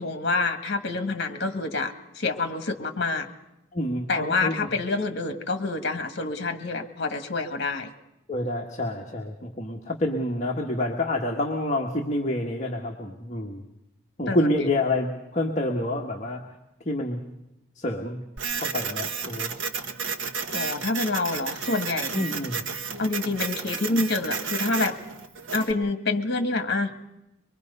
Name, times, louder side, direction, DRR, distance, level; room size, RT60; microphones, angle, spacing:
voice 1, 0.0-3.3 4.1-7.9 14.3-14.5 20.5-22.2 23.0-25.0 25.5-26.9, left 3 dB, 55° left, 8 dB, 1.7 m, -27 dB
voice 2, 3.7-4.7 8.3-13.6 14.2-16.4 16.8-17.2 17.7-18.2 18.6-19.5 22.1-22.6, left 1 dB, 35° left, 1 dB, 1.5 m, -28 dB
Printer, 18.4-25.7, right 6 dB, 75° right, 1.3 m, -32 dB
24.5 x 22.5 x 5.5 m, 0.89 s
head